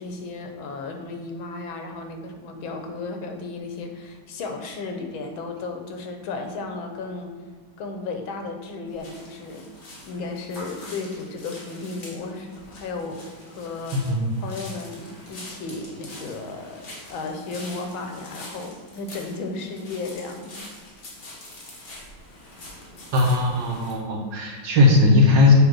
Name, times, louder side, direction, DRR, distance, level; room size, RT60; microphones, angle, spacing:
voice 1, 0.0-7.4 7.8-9.7 10.0-14.1 14.4-20.6, left 3 dB, 90° left, 5 dB, 1.7 m, -34 dB
Black Sand Beach Walk, 8.9-23.9, left 1 dB, 60° left, 2.3 m, -44 dB
voice 2, 13.9-14.3 23.1-25.5, left 2 dB, 65° right, -1 dB, 1.9 m, -18 dB
7.7 x 3.3 x 6.1 m, 1.4 s
omnidirectional pair, 2.1 m